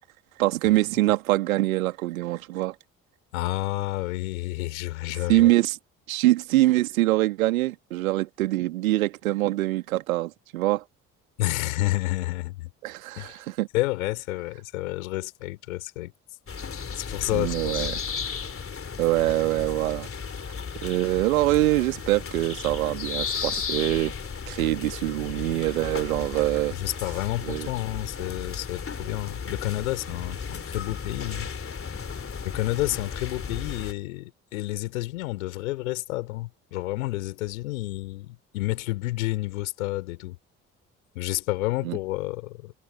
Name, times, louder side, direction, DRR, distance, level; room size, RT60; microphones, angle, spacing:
voice 1, 0.4-2.7 5.3-5.8 6.1-10.8 12.8-13.7 17.3-18.0 19.0-20.1 20.8-24.1 24.5-26.8 27.4-27.7 41.8-42.0, right 17 dB, 75° right, 2.2 m, -24 dB
voice 2, 3.3-5.5 11.4-12.7 13.2-13.3 13.7-16.1 16.9-17.9 26.7-31.5 32.4-40.4 41.1-42.7, left 19 dB, 70° left, 4.3 m, -30 dB
sound 1, 16.5-33.9, left 6 dB, 30° left, 3.0 m, -35 dB
figure-of-eight pair, 45°, 42 cm